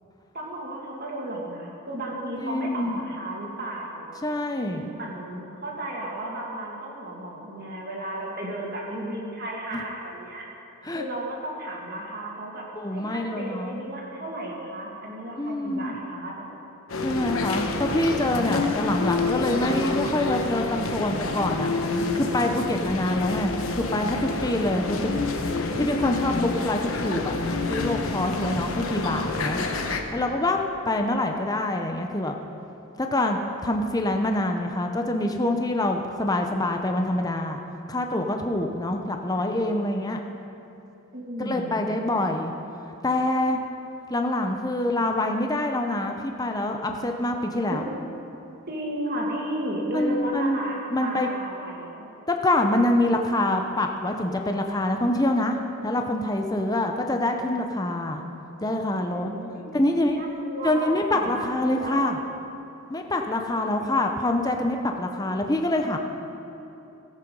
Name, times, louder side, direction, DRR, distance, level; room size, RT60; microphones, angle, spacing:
voice 1, 0.3-4.2 4.9-10.5 10.9-12.7 12.9-16.3 41.1-41.9 47.7-47.9 48.7-52.1 58.9-62.1 63.7-64.1, right 1 dB, 45° right, -2 dB, 2.2 m, -34 dB
voice 2, 2.4-3.0 4.2-4.9 9.7-9.8 10.8-11.0 12.7-13.9 15.4-16.0 17.0-25.2 25.7-27.4 27.7-29.6 30.1-30.6 30.9-32.3 33.0-37.6 37.9-40.2 41.4-42.5 43.0-43.6 44.1-47.8 49.9-50.6 50.9-51.3 52.3-55.6 55.8-58.2 58.6-59.3 59.7-60.2 60.6-62.2 62.9-66.0, left 1 dB, 15° left, 3 dB, 0.6 m, -25 dB
sound 1, 16.9-30.0, left 3 dB, 70° left, 1.1 m, -28 dB
17.0 x 8.7 x 5.4 m, 3.0 s
head